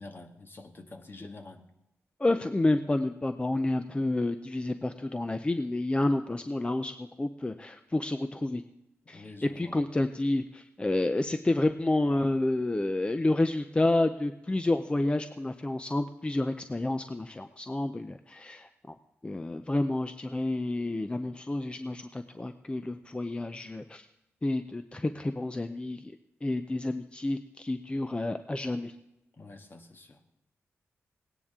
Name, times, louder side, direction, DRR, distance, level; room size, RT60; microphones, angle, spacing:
voice 1, 0.0-1.6 9.1-9.8 29.4-30.2, left 2 dB, 45° left, 5 dB, 1.5 m, -47 dB
voice 2, 2.2-8.6 9.1-18.9 19.2-24.1 24.4-26.1 26.4-28.9, left 2 dB, 20° left, 9 dB, 0.6 m, -29 dB
18.0 x 9.8 x 3.7 m, 0.90 s
cardioid pair, 70°, 5 cm